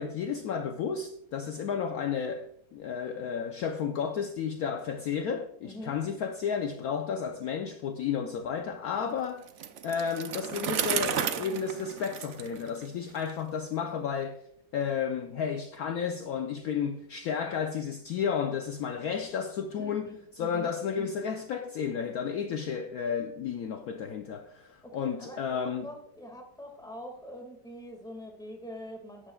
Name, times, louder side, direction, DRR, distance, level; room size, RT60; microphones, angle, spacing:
voice 1, 0.0-9.4 9.8-14.4 14.7-20.1 20.4-25.9, left 7 dB, 65° left, 1.0 m, -32 dB
voice 2, 5.6-6.0 19.8-20.7 21.0-21.1 24.8-29.3, equal, ahead, 1.7 m, -44 dB
Bicycle, 9.5-13.3, right 8 dB, 65° right, 0.7 m, -33 dB
14.5 x 9.9 x 2.3 m
omnidirectional pair, 1.9 m